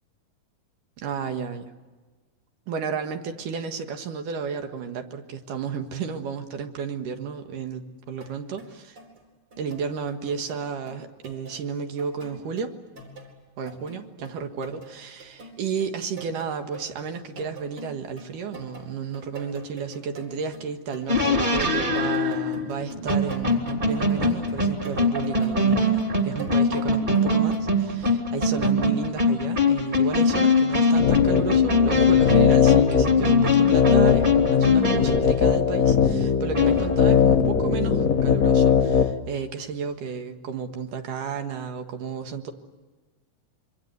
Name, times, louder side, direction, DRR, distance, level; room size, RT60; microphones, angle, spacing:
voice 1, 1.0-1.7 2.7-9.0 9.6-12.7 13.6-42.5, right 6 dB, 75° right, 6 dB, 3.1 m, -32 dB
sound 1, 8.1-11.6 12.0-13.4 13.7-21.2 21.5-27.7, right 2 dB, 35° right, 4.9 m, -44 dB
sound 2, 21.1-35.3 36.5-37.2, left 3 dB, 15° right, 2.6 m, -22 dB
sound 3, 31.0-39.1, left 7 dB, 85° left, 0.7 m, -20 dB
26.5 x 24.0 x 8.1 m, 1.3 s
omnidirectional pair, 3.9 m